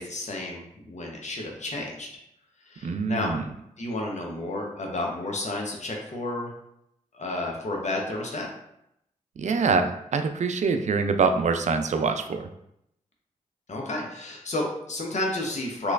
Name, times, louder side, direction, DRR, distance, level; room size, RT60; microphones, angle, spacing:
voice 1, 0.0-2.1 2.7-3.3 3.8-6.5 7.1-8.5 13.7-15.9, left 2 dB, 55° left, 0 dB, 0.9 m, -31 dB
voice 2, 2.8-3.4 9.4-12.5, right 4 dB, 55° right, 7 dB, 0.4 m, -25 dB
3.1 x 3.0 x 2.4 m, 0.78 s
cardioid pair, 40°, 14 cm